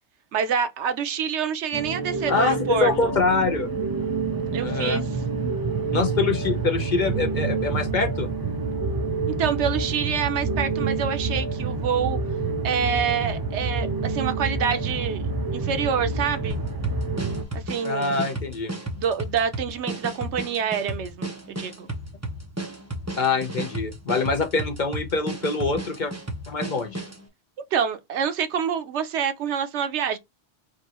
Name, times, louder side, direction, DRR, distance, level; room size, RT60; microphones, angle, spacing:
voice 1, 0.3-3.1 4.5-5.0 9.4-12.2 12.6-15.2 15.5-16.6 17.5-18.1 19.0-21.9 27.7-30.2, right 7 dB, 85° right, 1.0 m, -26 dB
sound 1, 1.7-17.4, right 4 dB, 30° right, 0.4 m, -28 dB
voice 2, 2.3-3.7 4.6-5.0 5.9-8.3 17.8-18.7 23.2-26.1 26.5-27.0, left 4 dB, 50° left, 0.7 m, -24 dB
sound 2, 16.5-27.2, right 1 dB, 15° right, 0.9 m, -33 dB
4.9 x 2.6 x 2.9 m
omnidirectional pair, 1.1 m